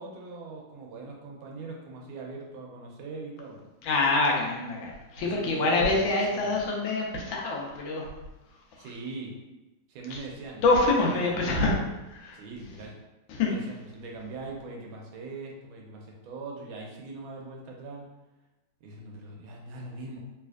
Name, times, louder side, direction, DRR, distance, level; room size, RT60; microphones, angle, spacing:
voice 1, 0.0-3.6 5.2-6.7 8.8-9.3 9.9-10.6 11.1-11.8 12.3-12.9 13.4-18.0 18.8-20.2, right 3 dB, 80° right, 0 dB, 1.4 m, -41 dB
voice 2, 3.8-8.1 10.1-10.2 10.6-11.7 12.2-12.4 13.3-13.5, left 3 dB, 75° left, -1 dB, 1.3 m, -25 dB
3.3 x 3.1 x 2.4 m, 1.0 s
omnidirectional pair, 2.3 m